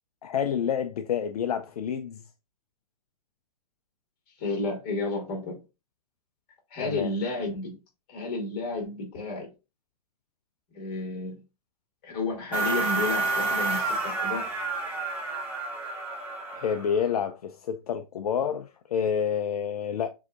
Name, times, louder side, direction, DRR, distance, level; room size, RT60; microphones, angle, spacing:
voice 1, 0.2-2.2 6.8-7.1 16.5-20.1, left 8 dB, 70° left, 0.5 m, -28 dB
voice 2, 4.4-5.6 6.7-7.8 8.1-9.5 10.7-11.4 12.0-14.5, left 2 dB, 40° left, 2.5 m, -31 dB
sound 1, 12.5-17.0, right 3 dB, 5° right, 1.5 m, -29 dB
7.2 x 2.8 x 2.5 m
hypercardioid pair, 120°, 20 cm